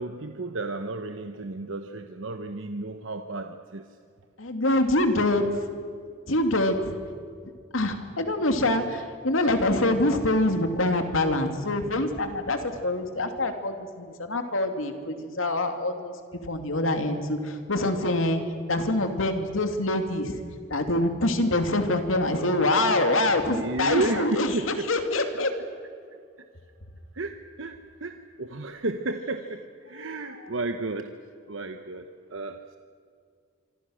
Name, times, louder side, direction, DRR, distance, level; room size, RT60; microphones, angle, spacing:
voice 1, 0.0-3.9 23.5-24.9 27.1-31.1 31.5-32.8, right 2 dB, 70° right, 7 dB, 1.0 m, -32 dB
voice 2, 4.4-5.4 6.3-7.0 7.7-16.1 16.4-18.4 18.7-20.4 20.7-25.5 30.0-30.1, left 1 dB, 80° left, 6 dB, 2.5 m, -25 dB
26.0 x 25.0 x 6.4 m, 2.2 s
head